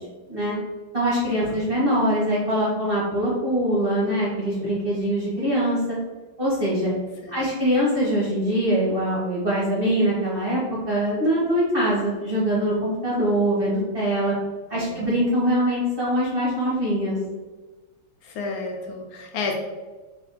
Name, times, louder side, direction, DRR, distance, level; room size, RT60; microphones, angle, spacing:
voice 1, 0.9-6.0 6.4-6.9 7.3-14.3 14.7-17.2, equal, 40° right, -7 dB, 0.9 m, -23 dB
voice 2, 18.2-19.5, left 4 dB, 75° left, 1 dB, 1.4 m, -32 dB
3.4 x 3.0 x 4.0 m, 1.2 s
omnidirectional pair, 2.2 m